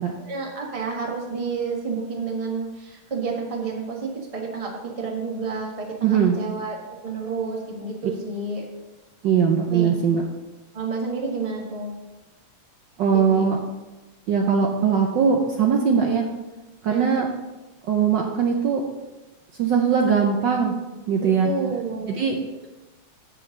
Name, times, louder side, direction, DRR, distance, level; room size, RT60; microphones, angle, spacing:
voice 1, 0.2-6.8 7.0-8.6 9.7-9.9 10.7-11.9 13.1-13.5 16.9-17.1 21.2-22.2, right 4 dB, 20° right, 0 dB, 1.2 m, -30 dB
voice 2, 6.0-6.4 9.2-10.2 13.0-13.6 14.3-16.3 16.8-17.3 17.9-18.8 19.6-20.7 21.1-21.5 22.1-22.4, right 6 dB, 65° right, 2 dB, 1.3 m, -20 dB
8.4 x 5.2 x 6.5 m, 1.1 s
omnidirectional pair, 2.4 m